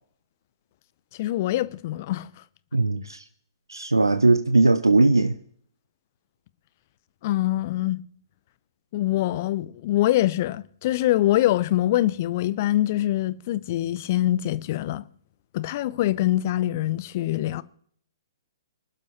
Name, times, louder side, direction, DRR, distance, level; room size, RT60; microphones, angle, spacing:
voice 1, 1.2-2.3 7.2-8.0 8.9-15.0 15.5-17.6, left 14 dB, 40° left, 0.5 m, -24 dB
voice 2, 2.7-3.3 3.7-5.4, right 2 dB, 80° right, 0.6 m, -19 dB
24.5 x 12.0 x 2.9 m
figure-of-eight pair, 120°, 2 cm